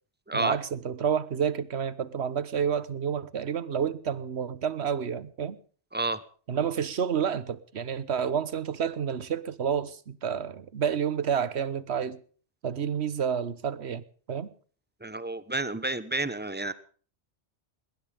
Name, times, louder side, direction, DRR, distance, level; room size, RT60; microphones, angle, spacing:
voice 1, 0.3-5.6 6.5-12.2 12.6-14.5, right 7 dB, 65° right, 1.3 m, -29 dB
voice 2, 15.0-16.7, right 2 dB, 10° right, 1.0 m, -30 dB
21.0 x 19.5 x 3.5 m
omnidirectional pair, 1.2 m